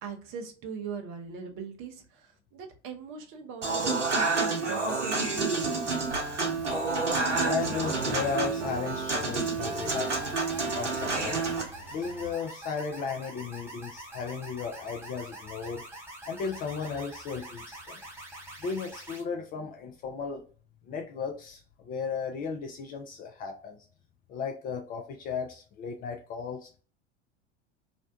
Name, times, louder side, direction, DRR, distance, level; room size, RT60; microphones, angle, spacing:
voice 1, 0.0-6.2, right 6 dB, 40° right, 4 dB, 0.6 m, -41 dB
Human voice / Acoustic guitar / Piano, 3.6-11.6, right 3 dB, 90° right, 0.7 m, -29 dB
sound 1, 6.0-12.3, left 1 dB, 90° left, 0.9 m, -46 dB
voice 2, 7.4-10.3 10.7-11.4 11.9-15.8 16.2-18.0 18.6-20.4 20.9-23.8 24.3-26.8, left 5 dB, 25° left, 2 dB, 0.3 m, -35 dB
sound 2, 9.6-19.2, right 1 dB, 5° right, 0.8 m, -45 dB
2.5 x 2.1 x 2.5 m, 0.38 s
figure-of-eight pair, 85°, 35 cm